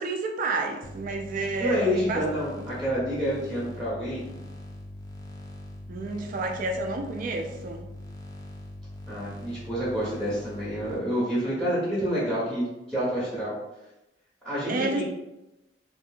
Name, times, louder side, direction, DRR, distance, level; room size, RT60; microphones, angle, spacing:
voice 1, 0.0-2.2 5.9-7.8 14.7-15.0, right 3 dB, 50° right, 3 dB, 0.3 m, -30 dB
sound 1, 0.8-11.0, left 1 dB, 20° left, 0.4 m, -42 dB
voice 2, 1.6-4.2 9.1-13.5 14.4-15.0, equal, ahead, -11 dB, 1.0 m, -28 dB
2.8 x 2.5 x 2.4 m, 0.93 s
head